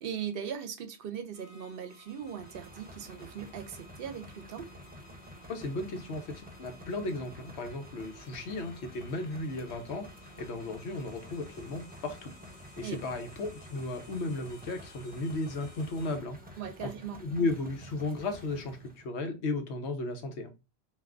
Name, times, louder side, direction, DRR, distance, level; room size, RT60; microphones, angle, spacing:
voice 1, 0.0-4.7 12.8-13.0 16.6-17.2, right 8 dB, 65° right, 0.7 m, -39 dB
sound 1, 1.3-16.1, left 1 dB, 55° left, 1.3 m, -57 dB
sound 2, 2.2-19.1, left 1 dB, 15° right, 0.4 m, -50 dB
voice 2, 5.5-10.1 10.4-12.3 12.8-16.9 17.2-20.5, left 2 dB, 85° left, 1.0 m, -35 dB
3.4 x 2.5 x 2.3 m
omnidirectional pair, 1.1 m